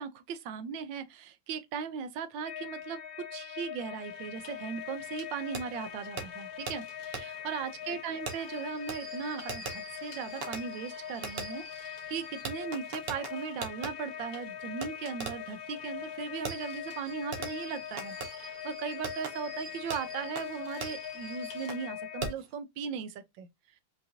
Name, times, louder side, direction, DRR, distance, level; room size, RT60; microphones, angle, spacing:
voice 1, 0.0-3.0 3.3-23.5, right 6 dB, 75° right, 1.4 m, -38 dB
sound 1, 2.4-22.3, left 9 dB, 45° left, 0.8 m, -42 dB
sound 2, 3.9-21.8, left 5 dB, 70° left, 1.8 m, -57 dB
Fireworks, 5.5-5.6 6.2-6.3 6.7-6.8 7.1-7.2 8.3-13.9 14.8-14.9 15.2-15.5 16.4-21.9 22.2-22.5, right 4 dB, 55° right, 0.7 m, -41 dB
5.5 x 2.6 x 2.8 m
omnidirectional pair, 2.1 m